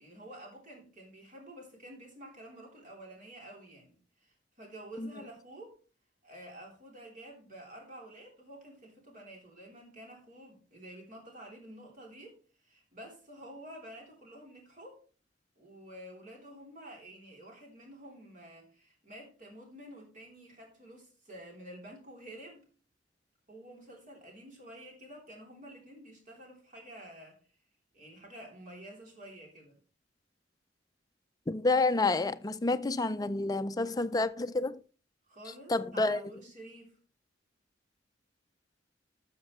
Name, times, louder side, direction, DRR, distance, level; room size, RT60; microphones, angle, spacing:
voice 1, 0.0-5.8 6.2-12.4 12.6-15.0 15.6-22.6 23.5-27.4 27.9-29.8 35.3-37.0, right 1 dB, 45° right, 3.3 m, -50 dB
voice 2, 31.5-34.8 35.7-36.2, left 3 dB, 20° left, 0.4 m, -29 dB
12.5 x 6.6 x 3.1 m
head